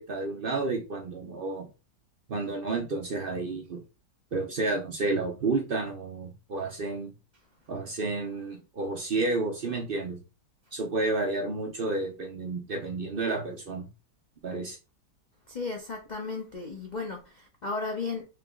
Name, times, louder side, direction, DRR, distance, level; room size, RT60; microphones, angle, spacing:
voice 1, 0.0-1.7 2.3-3.8 4.3-7.1 7.7-10.2 10.7-13.9 14.4-14.8, right 3 dB, 60° right, 0.5 m, -31 dB
voice 2, 15.5-18.2, left 3 dB, 70° left, 0.4 m, -35 dB
3.7 x 2.9 x 3.6 m
omnidirectional pair, 2.0 m